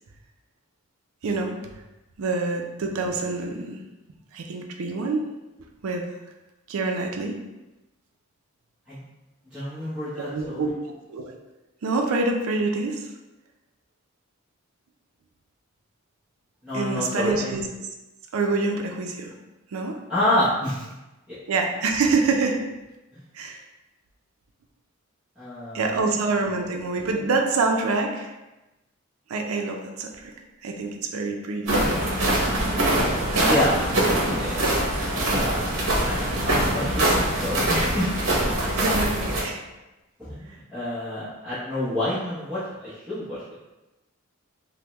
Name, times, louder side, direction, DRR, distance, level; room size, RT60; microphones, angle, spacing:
voice 1, 1.2-1.6 2.2-3.8 4.3-5.2 5.8-6.1 6.7-7.4 10.2-10.7 11.1-11.4 11.8-13.1 16.7-17.6 18.3-19.3 19.7-20.0 21.5-22.6 23.3-23.6 25.7-28.3 29.3-30.3 30.6-31.8 38.7-39.6, right 3 dB, 85° right, 3 dB, 0.4 m, -26 dB
voice 2, 9.5-10.7 16.6-17.5 20.1-20.8 21.3-21.4 23.1-23.2 25.4-26.1 33.4-33.8 34.3-34.6 35.3-37.0 37.4-38.1 38.4-38.7 40.2-43.4, left 1 dB, 5° right, -14 dB, 0.7 m, -28 dB
sound 1, 31.7-39.4, right 1 dB, 65° right, 0.8 m, -23 dB
3.3 x 2.1 x 2.9 m, 1.0 s
head